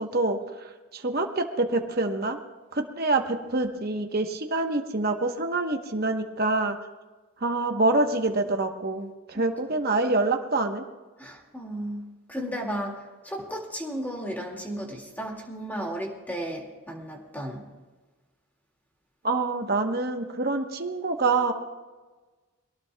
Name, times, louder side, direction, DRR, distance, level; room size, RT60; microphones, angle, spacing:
voice 1, 0.0-2.4 2.7-6.8 7.4-10.8 19.2-21.5, right 2 dB, 45° right, 4 dB, 1.1 m, -26 dB
voice 2, 11.2-17.6, equal, 10° left, 0 dB, 2.2 m, -34 dB
23.0 x 18.0 x 2.3 m, 1.3 s
head